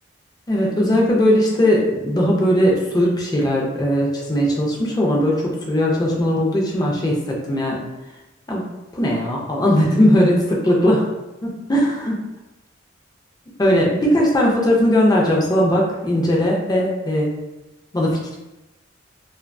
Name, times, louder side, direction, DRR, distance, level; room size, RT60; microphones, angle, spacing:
voice 1, 0.5-7.8 8.5-11.1 11.4-12.2 13.6-17.4 17.9-18.4, equal, 20° left, -3 dB, 0.4 m, -19 dB
2.3 x 2.2 x 2.5 m, 0.99 s
head